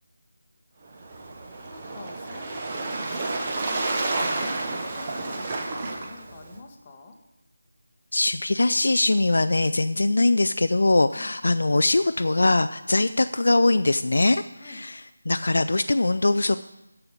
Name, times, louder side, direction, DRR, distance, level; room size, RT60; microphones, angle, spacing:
Waves surf, 0.9-6.6, right 2 dB, 25° right, 1.0 m, -30 dB
voice 1, 1.6-7.2 11.1-11.3 14.6-14.8, left 3 dB, 20° left, 2 dB, 1.0 m, -46 dB
voice 2, 8.1-16.6, left 2 dB, 60° left, 10 dB, 0.3 m, -22 dB
7.1 x 6.8 x 7.9 m, 0.94 s
figure-of-eight pair, 165°, 0 cm